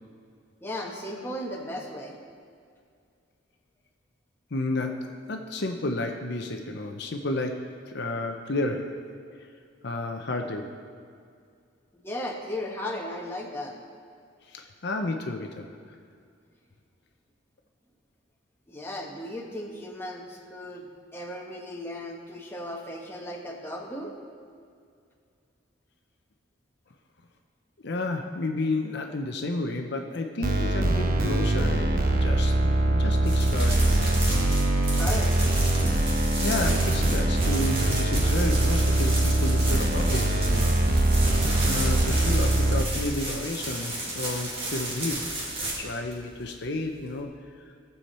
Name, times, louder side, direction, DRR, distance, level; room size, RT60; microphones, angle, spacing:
voice 1, 0.6-2.2 11.9-13.7 18.7-20.9 21.1-24.1 34.9-35.5, left 1 dB, 10° left, -1 dB, 1.2 m, -36 dB
voice 2, 4.5-9.1 9.4-9.5 9.8-10.8 14.4-15.7 27.8-34.1 36.4-40.8 41.7-45.3 45.6-47.7, left 2 dB, 60° left, 4 dB, 0.7 m, -31 dB
sound 1, 30.4-42.8, right 1 dB, 45° right, 0.9 m, -23 dB
sound 2, 33.3-47.2, right 1 dB, 30° right, 2.0 m, -34 dB
18.0 x 7.1 x 4.3 m, 2.3 s
head